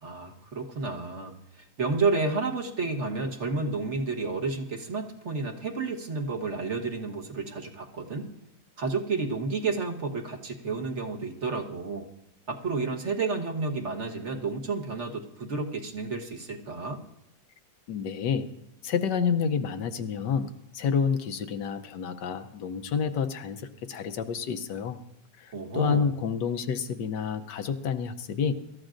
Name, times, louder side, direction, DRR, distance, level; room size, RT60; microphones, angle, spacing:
voice 1, 0.0-8.3 8.8-12.1 12.5-17.0 25.5-26.1, right 3 dB, 40° right, 2 dB, 1.5 m, -31 dB
voice 2, 17.9-18.5 18.8-25.0 25.4-28.5, left 6 dB, 75° left, 9 dB, 1.4 m, -29 dB
25.0 x 14.0 x 2.6 m, 0.87 s
omnidirectional pair, 1.9 m